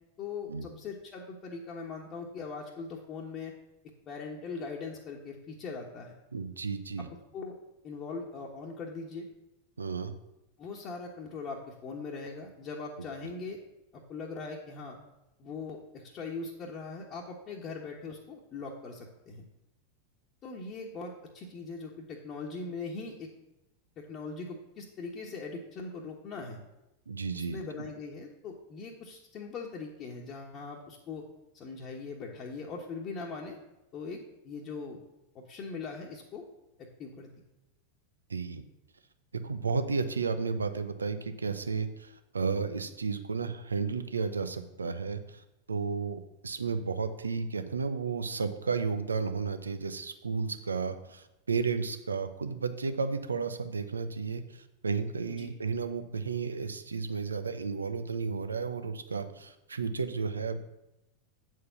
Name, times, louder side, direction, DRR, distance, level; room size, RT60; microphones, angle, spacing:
voice 1, 0.2-3.5 4.1-6.1 7.0-7.1 7.3-7.6 7.8-9.3 10.6-13.6 13.9-15.0 15.4-19.4 20.4-23.3 24.0-26.6 27.3-31.2 31.5-33.6 33.9-35.0 35.3-36.4 36.8-37.3 55.3-55.5, left 4 dB, 35° left, -3 dB, 1.2 m, -41 dB
voice 2, 6.3-7.1 9.8-10.1 27.1-27.6 38.3-38.6 39.3-60.6, right 5 dB, 85° right, 9 dB, 0.6 m, -33 dB
7.9 x 4.7 x 7.0 m, 0.92 s
figure-of-eight pair, 90°, 0 cm